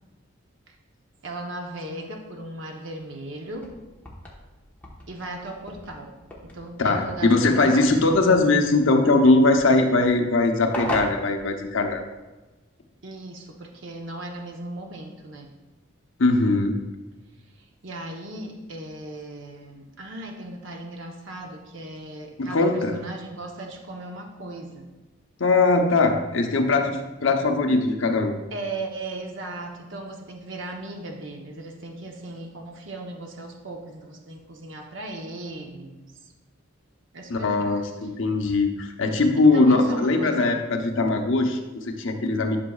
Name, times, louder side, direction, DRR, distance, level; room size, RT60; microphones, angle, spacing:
voice 1, 1.2-3.7 5.1-6.1 6.4-7.9 13.0-15.5 17.6-24.9 28.5-36.3 37.1-37.7 39.4-40.5, right 2 dB, 60° right, 2 dB, 0.9 m, -37 dB
sound 1, 3.4-12.2, left 1 dB, 10° left, 1.2 m, -39 dB
voice 2, 6.8-12.0 16.2-16.8 22.4-22.9 25.4-28.3 37.3-42.6, left 3 dB, 65° left, 4 dB, 0.8 m, -20 dB
11.5 x 6.2 x 2.4 m, 1.1 s
head